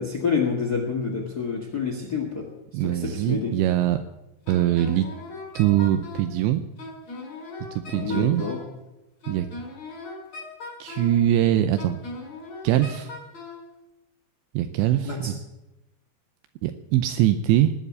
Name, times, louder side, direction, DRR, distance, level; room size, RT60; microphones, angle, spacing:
voice 1, 0.0-2.5 2.7-3.5 7.9-8.6 15.0-15.3, left 5 dB, 80° left, 2 dB, 0.8 m, -28 dB
voice 2, 2.7-4.0 4.5-5.1 5.6-6.6 7.6-8.5 9.3-9.5 10.8-12.0 12.6-13.1 14.5-15.4 16.6-17.7, right 12 dB, 85° right, 9 dB, 2.9 m, -22 dB
Wind instrument woodwind instrument, 4.5-6.3 6.8-8.7 9.2-11.2 11.8-13.6, left 3 dB, 40° left, 6.4 m, -39 dB
19.0 x 7.5 x 8.4 m, 0.94 s
omnidirectional pair, 5.2 m